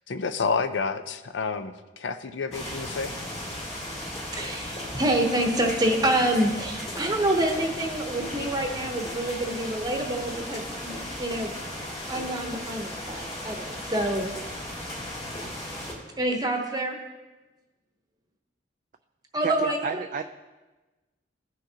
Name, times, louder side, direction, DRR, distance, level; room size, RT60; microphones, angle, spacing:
voice 1, 0.1-3.1, left 4 dB, 70° left, 11 dB, 0.5 m, -29 dB
sound 1, 2.5-15.9, left 1 dB, 35° left, 2.7 m, -36 dB
voice 2, 4.3-11.5 12.1-14.3 16.2-17.0 19.3-20.2, right 1 dB, 20° right, 2 dB, 0.9 m, -27 dB
voice 3, 19.4-20.2, right 5 dB, 45° right, 7 dB, 0.3 m, -31 dB
16.5 x 6.2 x 2.8 m, 1.2 s
head